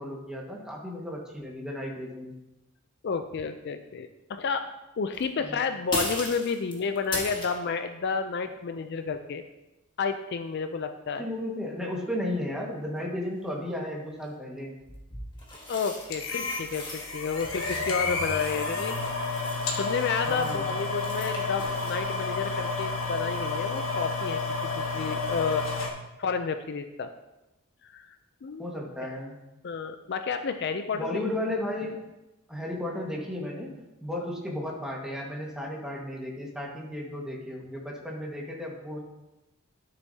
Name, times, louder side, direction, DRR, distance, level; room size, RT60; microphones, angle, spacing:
voice 1, 0.0-2.3 5.4-5.6 11.2-14.7 20.2-20.6 28.6-29.4 30.9-32.0 32.5-33.7 34.0-39.0, left 1 dB, 5° right, -2 dB, 1.6 m, -34 dB
voice 2, 3.0-4.6 5.0-9.4 10.0-11.2 15.7-18.9 19.7-25.6 26.2-27.1 27.9-28.1 28.4-28.7 29.6-31.2, left 5 dB, 55° left, 8 dB, 0.4 m, -31 dB
sound 1, 5.1-5.3 5.9-7.7 13.6-13.7 14.8-17.1 17.3-22.0, left 1 dB, 25° left, 1.6 m, -38 dB
sound 2, 16.1-25.9, left 3 dB, 75° left, 1.3 m, -31 dB
12.0 x 6.9 x 2.8 m, 0.98 s
head